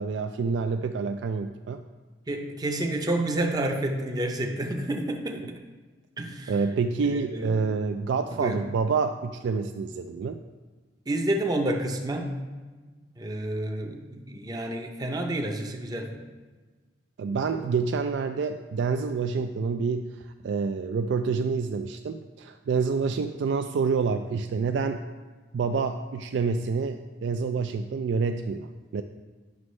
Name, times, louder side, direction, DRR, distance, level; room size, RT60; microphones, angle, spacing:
voice 1, 0.0-1.8 6.5-10.4 17.2-20.1 20.4-25.0 25.5-29.0, right 5 dB, 75° right, 7 dB, 0.3 m, -27 dB
voice 2, 2.3-5.4 6.2-6.5 7.0-7.5 8.3-8.6 11.1-12.3 13.2-16.1, right 1 dB, 20° right, 3 dB, 0.6 m, -29 dB
9.4 x 6.1 x 3.2 m, 1.4 s
head